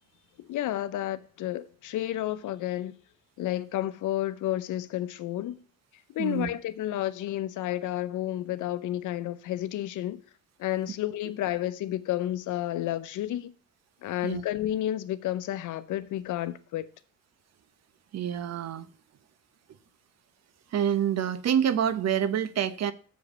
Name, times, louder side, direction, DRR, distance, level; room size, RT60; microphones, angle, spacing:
voice 1, 0.4-2.9 3.4-5.6 6.1-10.2 10.6-13.5 14.0-16.9, left 13 dB, 80° left, 0.8 m, -31 dB
voice 2, 6.2-6.5 14.2-14.4 18.1-18.9 20.7-22.9, right 9 dB, 60° right, 0.8 m, -27 dB
7.2 x 4.9 x 6.3 m
cardioid pair, 90°, 30 cm